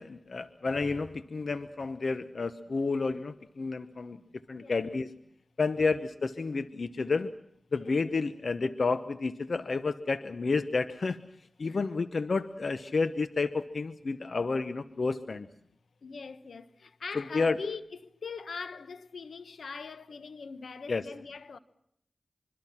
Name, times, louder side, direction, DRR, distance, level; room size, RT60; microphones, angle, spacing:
voice 1, 0.0-4.2 4.5-5.1 5.6-7.3 7.7-11.2 11.6-15.5 17.3-17.6 20.9-21.1, left 4 dB, 70° left, 1.0 m, -30 dB
voice 2, 16.0-21.6, left 5 dB, 85° left, 1.3 m, -41 dB
25.5 x 24.0 x 5.9 m
cardioid pair, 40°, 0 cm